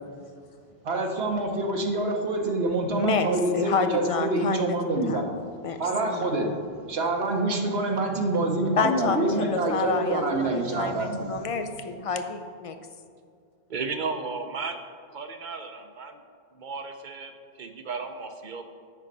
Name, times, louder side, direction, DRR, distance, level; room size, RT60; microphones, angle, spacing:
voice 1, 0.8-5.3 5.8-6.5 6.9-11.4, right 2 dB, 80° right, 2 dB, 1.2 m, -26 dB
voice 2, 2.9-5.8 6.0-6.3 8.8-12.8, left 5 dB, 45° left, 7 dB, 0.5 m, -29 dB
voice 3, 13.7-14.8 15.1-16.2 16.5-17.3 17.6-18.6, right 4 dB, 55° right, 7 dB, 0.7 m, -34 dB
8.2 x 5.6 x 5.2 m, 2.2 s
omnidirectional pair, 1.0 m